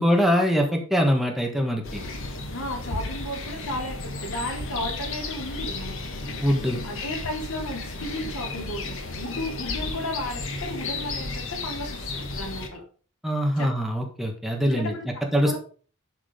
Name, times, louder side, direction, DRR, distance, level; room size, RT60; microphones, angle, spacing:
voice 1, 0.0-2.0 6.4-6.8 13.2-15.6, equal, ahead, 1 dB, 1.5 m, -23 dB
sound 1, 1.8-12.7, left 3 dB, 65° left, 1.6 m, -33 dB
voice 2, 2.5-6.0 6.8-12.8 13.6-13.7 14.6-15.0 15.3-15.6, left 1 dB, 85° left, -2 dB, 4.3 m, -34 dB
11.0 x 5.0 x 5.2 m, 0.41 s
head